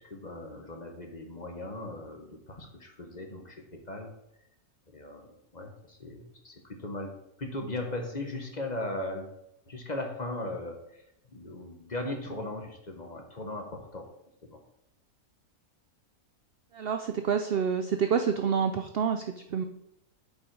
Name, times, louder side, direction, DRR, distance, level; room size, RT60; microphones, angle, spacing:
voice 1, 0.0-4.1 4.9-7.1 7.4-9.3 9.7-14.1 14.4-14.6, left 2 dB, 30° left, 3 dB, 1.1 m, -38 dB
voice 2, 16.7-19.6, right 6 dB, 70° right, 7 dB, 0.5 m, -28 dB
7.6 x 5.6 x 4.7 m, 0.82 s
omnidirectional pair, 1.6 m